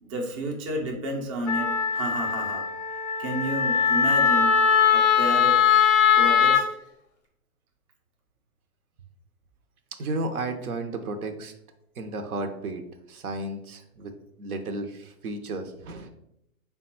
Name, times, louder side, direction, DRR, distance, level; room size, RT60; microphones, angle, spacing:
voice 1, 0.0-2.7 3.2-4.6 4.9-5.6 6.2-6.7, right 1 dB, 25° right, 1 dB, 0.4 m, -31 dB
Wind instrument woodwind instrument, 1.5-6.6, left 7 dB, 35° left, 0.4 m, -21 dB
voice 2, 10.0-11.5 12.0-12.8 13.1-14.1 14.4-16.1, right 2 dB, 80° right, 7 dB, 0.7 m, -33 dB
3.5 x 2.2 x 4.2 m, 0.79 s
hypercardioid pair, 135°, 43 cm